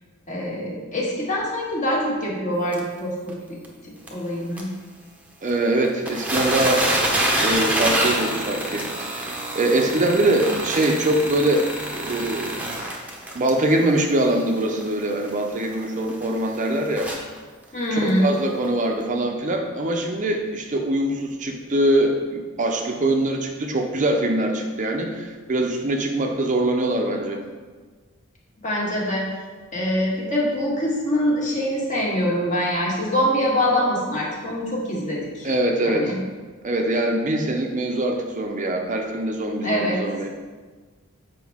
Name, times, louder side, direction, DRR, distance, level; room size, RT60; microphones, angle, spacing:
voice 1, 0.3-3.3 4.1-4.7 17.7-18.3 28.6-29.3 29.7-35.5 35.8-36.2 39.6-40.0, equal, 35° left, -4 dB, 1.6 m, -24 dB
sound 1, 2.7-2.8 3.3-3.4 3.6-3.7 4.1-4.2 4.6-4.7 5.5-5.6 5.8-17.4 18.1-18.2 18.6-18.7, right 1 dB, 5° right, 0.8 m, -26 dB
voice 2, 5.4-6.8 7.4-11.7 11.9-12.6 13.3-17.1 17.9-27.4 35.4-36.2 36.6-40.3, right 1 dB, 35° right, 3 dB, 0.6 m, -23 dB
8.2 x 5.2 x 3.5 m, 1.4 s
head